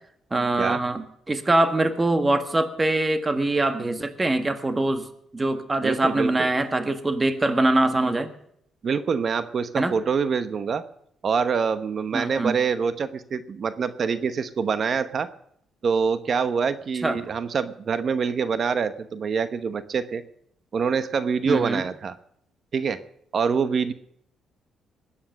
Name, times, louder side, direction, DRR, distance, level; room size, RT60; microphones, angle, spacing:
voice 1, 0.3-5.1 5.3-8.3 9.7-9.9 12.1-12.6 17.0-17.2 21.5-21.8, right 2 dB, 20° right, 9 dB, 1.6 m, -23 dB
voice 2, 5.8-6.5 8.8-10.8 11.2-15.3 15.8-20.2 20.7-22.1 22.7-23.0 23.3-23.9, right 6 dB, 50° right, 12 dB, 1.0 m, -25 dB
20.5 x 8.7 x 6.6 m, 0.71 s
cardioid pair, 90°, 0 cm